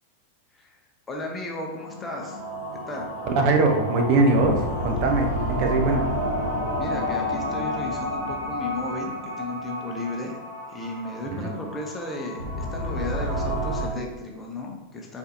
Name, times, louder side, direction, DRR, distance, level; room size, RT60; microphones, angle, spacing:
voice 1, 1.1-2.4 2.9-3.1 6.8-10.4 10.7-15.2, left 2 dB, 15° left, 0 dB, 0.7 m, -34 dB
sound 1, 1.7-13.9, equal, 80° right, 1.1 m, -30 dB
voice 2, 3.3-6.1 11.3-11.5, right 2 dB, 45° right, 3 dB, 0.6 m, -22 dB
4.3 x 3.9 x 2.6 m, 1.2 s
figure-of-eight pair, 90°, 0 cm